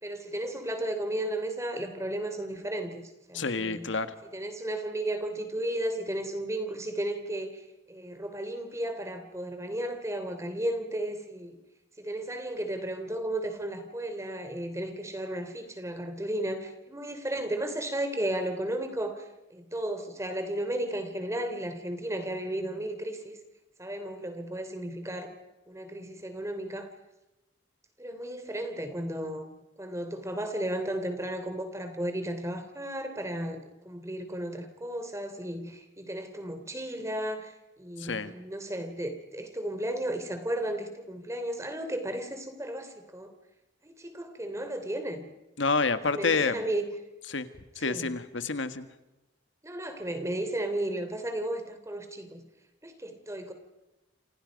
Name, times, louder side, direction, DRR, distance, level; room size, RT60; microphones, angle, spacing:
voice 1, 0.0-3.9 4.3-7.6 7.9-11.6 12.0-23.4 23.8-25.3 25.7-26.9 28.0-29.5 29.8-43.3 43.8-45.2 46.0-46.8 47.8-48.1 49.6-52.4 52.8-53.5, right 1 dB, 15° right, 8 dB, 3.1 m, -34 dB
voice 2, 3.3-4.1 38.0-38.3 45.6-46.6 47.3-47.5 47.7-48.9, left 4 dB, 80° left, 11 dB, 1.6 m, -28 dB
29.0 x 27.0 x 5.3 m, 1.0 s
head